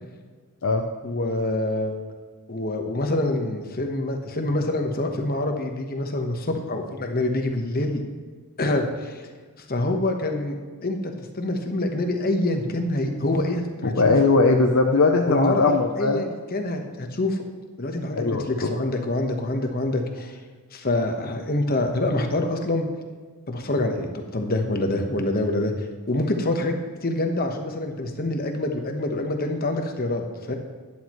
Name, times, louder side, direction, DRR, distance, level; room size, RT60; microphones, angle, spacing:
voice 1, 1.0-2.0 2.5-8.0 8.6-9.2 9.7-10.6 10.8-14.1 15.3-17.4 17.8-20.4 20.7-22.8 23.5-25.7 26.1-30.5, left 1 dB, 40° left, 4 dB, 1.2 m, -26 dB
voice 2, 14.0-16.2 18.1-18.7, left 3 dB, 60° left, 2 dB, 0.7 m, -20 dB
12.0 x 10.5 x 3.1 m, 1.5 s
head